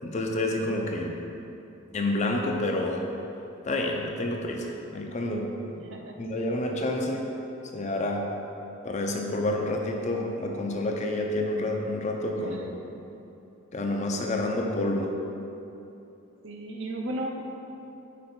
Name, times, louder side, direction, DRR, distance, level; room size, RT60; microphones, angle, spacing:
voice 1, 0.0-1.2 1.9-3.0 3.6-5.5 6.2-7.3 7.7-8.3 8.8-12.8 13.7-15.1, left 1 dB, 35° left, 2 dB, 0.5 m, -29 dB
voice 2, 5.8-6.2 12.3-12.7 16.4-17.3, right 1 dB, 60° right, 2 dB, 0.6 m, -35 dB
5.2 x 4.4 x 4.3 m, 2.9 s
head